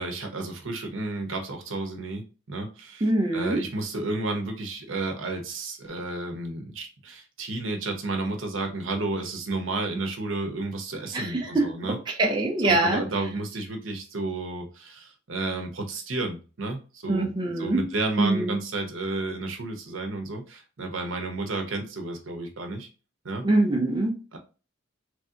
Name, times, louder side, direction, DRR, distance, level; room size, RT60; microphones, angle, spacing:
voice 1, 0.0-12.0 12.6-17.3 17.6-22.9 23.2-23.5 24.3-24.4, right 2 dB, 65° right, 4 dB, 0.8 m, -32 dB
voice 2, 3.0-3.6 11.1-13.0 17.1-17.9 18.2-18.6 23.4-24.2, right 2 dB, 20° right, 1 dB, 0.4 m, -24 dB
3.2 x 2.7 x 2.4 m, 0.34 s
head